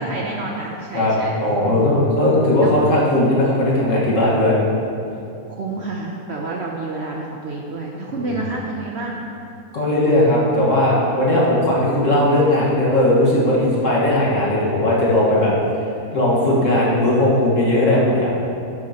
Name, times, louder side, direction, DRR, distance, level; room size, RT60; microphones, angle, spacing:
voice 1, 0.0-1.3 1.7-1.8 2.6-2.7 5.5-9.2, right 2 dB, 60° right, -1 dB, 0.8 m, -29 dB
voice 2, 1.4-4.6 8.1-8.4 9.7-15.5 16.1-18.4, left 1 dB, 55° left, -6 dB, 1.9 m, -17 dB
9.7 x 8.0 x 2.9 m, 2.7 s
omnidirectional pair, 1.6 m